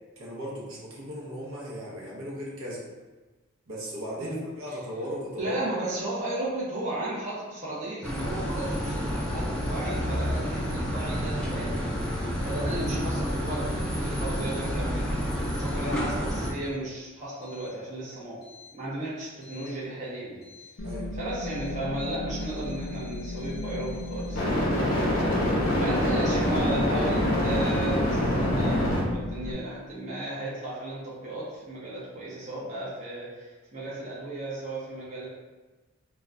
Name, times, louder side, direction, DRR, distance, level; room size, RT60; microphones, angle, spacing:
voice 1, 0.2-2.9 3.7-5.9 12.4-12.6 20.8-21.1, equal, 80° right, -4 dB, 0.7 m, -37 dB
voice 2, 5.4-12.0 12.4-15.3 15.6-18.4 18.7-20.4 21.1-24.6 25.8-35.3, right 1 dB, 35° right, -8 dB, 0.6 m, -34 dB
sound 1, 8.0-16.5, equal, 5° left, 0.4 m, -29 dB
sound 2, 19.5-19.6 24.4-29.0, left 1 dB, 45° left, 0.7 m, -25 dB
sound 3, 20.8-29.5, left 2 dB, 90° left, 0.5 m, -36 dB
2.2 x 2.1 x 3.6 m, 1.2 s
head